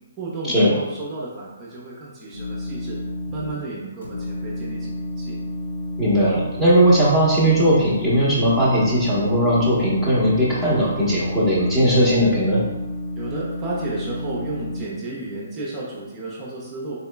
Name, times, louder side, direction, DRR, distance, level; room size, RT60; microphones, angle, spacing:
voice 1, 0.2-3.0 3.3-5.4 13.1-17.0, right 2 dB, 25° right, -5 dB, 0.6 m, -33 dB
sound 1, 2.3-3.5 4.0-14.8, left 1 dB, 85° left, 0.8 m, -30 dB
voice 2, 6.0-12.6, equal, 10° left, -8 dB, 1.0 m, -18 dB
3.8 x 2.9 x 2.2 m, 1.1 s
hypercardioid pair, 145°, 0 cm